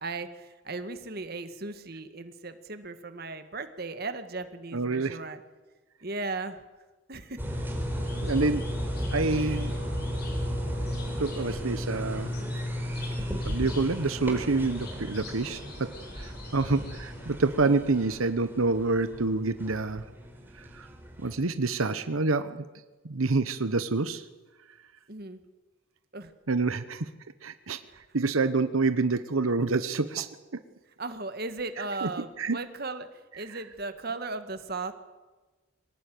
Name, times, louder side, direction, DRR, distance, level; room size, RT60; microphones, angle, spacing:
voice 1, 0.0-5.4 6.0-6.6 7.1-7.4 9.4-9.6 25.1-25.4 26.1-26.3 27.9-28.0 31.0-33.1 33.3-34.9, right 3 dB, 50° right, 9 dB, 1.8 m, -36 dB
voice 2, 4.7-5.2 8.2-8.7 9.1-9.7 11.2-12.3 13.4-15.9 16.2-20.0 20.6-20.9 21.2-22.6 23.0-24.3 26.5-27.1 27.4-27.8 28.1-30.3 30.5-30.6 32.0-32.1 32.4-32.6, right 3 dB, 85° right, 11 dB, 1.1 m, -27 dB
sound 1, 7.4-21.4, equal, 10° right, 4.3 m, -34 dB
sound 2, 7.9-17.5, left 1 dB, 50° left, 5.8 m, -45 dB
25.0 x 18.5 x 9.3 m, 1.3 s
head